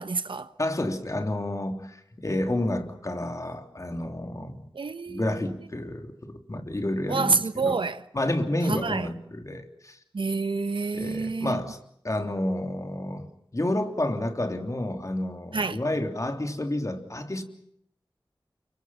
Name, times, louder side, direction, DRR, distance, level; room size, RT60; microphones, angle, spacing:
voice 1, 0.0-0.5 4.7-5.3 7.1-8.0 8.7-9.1 10.1-11.6 15.5-15.8, right 4 dB, 80° right, 1.2 m, -27 dB
voice 2, 0.6-4.7 5.1-7.8 8.1-10.0 10.9-11.8 12.0-13.3 13.5-17.4, left 1 dB, 40° left, 3.2 m, -30 dB
30.0 x 24.5 x 5.8 m
wide cardioid pair, 65°, 8 cm